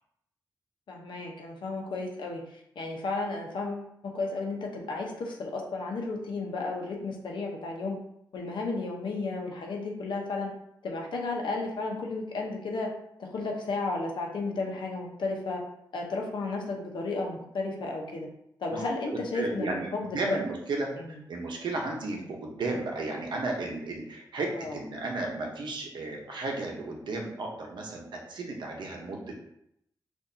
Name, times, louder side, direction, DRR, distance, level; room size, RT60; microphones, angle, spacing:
voice 1, 0.9-8.0 8.3-10.5 10.8-12.9 13.2-15.6 15.9-18.3 18.6-20.4 21.0-21.1 22.1-22.2 24.5-24.8, left 3 dB, 85° left, 0 dB, 0.9 m, -33 dB
voice 2, 19.3-29.3, right 2 dB, 75° right, 0 dB, 1.0 m, -34 dB
6.3 x 2.6 x 2.7 m, 0.76 s
wide cardioid pair, 160°, 8 cm